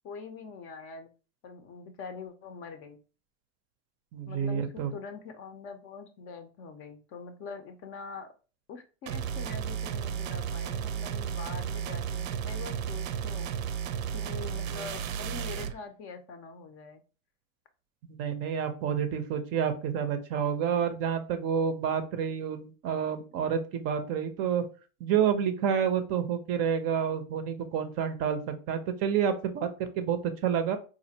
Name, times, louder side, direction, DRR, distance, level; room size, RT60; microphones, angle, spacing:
voice 1, 0.0-1.1 1.4-3.0 4.3-8.3 8.7-13.5 14.1-17.0, left 5 dB, 35° left, 8 dB, 0.5 m, -44 dB
voice 2, 4.1-4.9 18.0-24.7 25.0-29.7 30.0-30.8, right 8 dB, 40° right, 8 dB, 0.5 m, -29 dB
sound 1, 9.1-15.8, right 8 dB, 80° right, 0.6 m, -33 dB
4.2 x 2.5 x 2.7 m, 0.35 s
hypercardioid pair, 115°, 40 cm